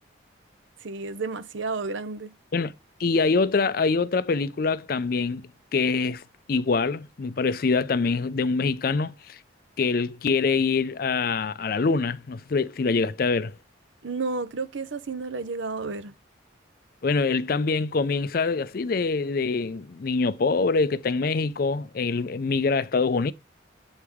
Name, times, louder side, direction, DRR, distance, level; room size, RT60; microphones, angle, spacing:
voice 1, 0.8-2.3 14.0-16.1, right 4 dB, 75° right, 0.7 m, -31 dB
voice 2, 3.0-6.2 6.5-9.4 9.8-13.6 17.0-23.3, left 4 dB, 50° left, 0.4 m, -25 dB
8.0 x 4.7 x 3.5 m
head